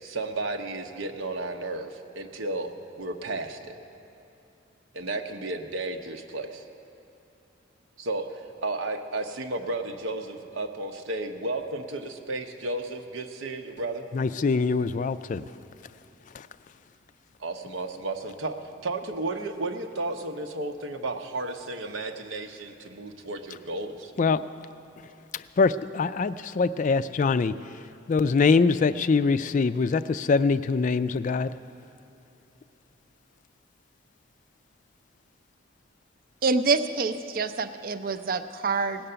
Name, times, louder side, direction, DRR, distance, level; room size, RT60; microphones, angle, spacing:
voice 1, 0.0-3.8 4.9-6.6 8.0-14.1 17.4-24.1, right 2 dB, 85° right, 5 dB, 0.9 m, -33 dB
voice 2, 14.1-15.4 16.3-16.5 24.2-24.4 25.3-27.5 28.1-31.5, left 4 dB, 40° left, 13 dB, 0.3 m, -23 dB
voice 3, 36.4-39.1, right 4 dB, 45° right, 11 dB, 0.5 m, -26 dB
18.0 x 8.8 x 6.8 m, 2.7 s
head